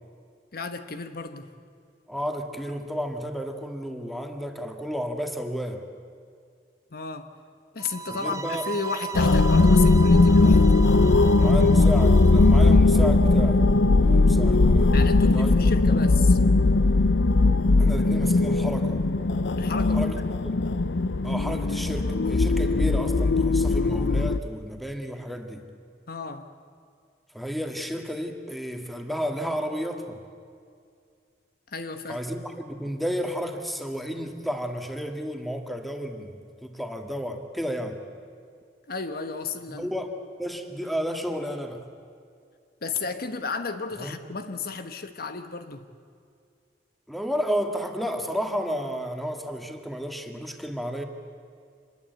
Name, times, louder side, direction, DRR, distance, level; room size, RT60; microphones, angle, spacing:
voice 1, 0.5-1.5 6.9-7.3 7.7-10.6 14.9-16.4 19.6-20.2 26.1-26.5 31.7-32.2 38.9-39.9 42.8-45.9, left 4 dB, 55° left, 8 dB, 1.2 m, -33 dB
voice 2, 2.1-5.8 8.1-8.7 11.4-13.6 14.0-15.6 17.8-19.0 19.9-20.5 21.2-25.7 27.3-30.2 32.1-38.0 39.7-41.8 44.0-44.1 47.1-51.0, equal, ahead, 4 dB, 1.9 m, -32 dB
sound 1, 7.8-12.8, right 5 dB, 20° right, 0.6 m, -37 dB
sound 2, 9.1-24.4, left 3 dB, 75° left, 0.7 m, -19 dB
26.5 x 21.0 x 8.2 m, 2.3 s
head